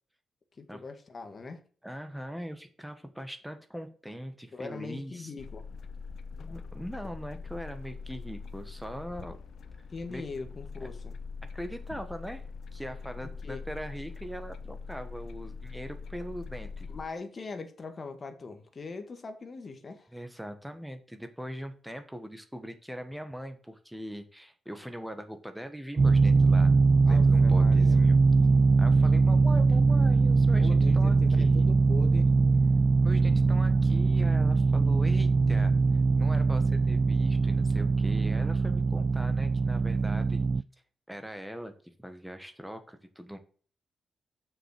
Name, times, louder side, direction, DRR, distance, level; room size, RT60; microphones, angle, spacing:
voice 1, 0.6-1.6 4.5-5.6 9.9-11.1 13.4-13.6 16.9-20.1 27.0-28.1 30.6-32.3, left 4 dB, 35° left, 1.6 m, -41 dB
voice 2, 1.8-5.3 6.4-9.4 10.1-10.2 10.8-10.9 11.5-16.9 20.1-26.7 27.0-28.2 28.8-31.7 33.0-40.4 41.1-43.4, equal, ahead, 1.4 m, -41 dB
sound 1, 5.4-17.1, left 5 dB, 65° left, 0.6 m, -42 dB
sound 2, 26.0-40.6, right 4 dB, 30° right, 0.3 m, -22 dB
7.2 x 6.4 x 6.5 m
wide cardioid pair, 135°, 0 cm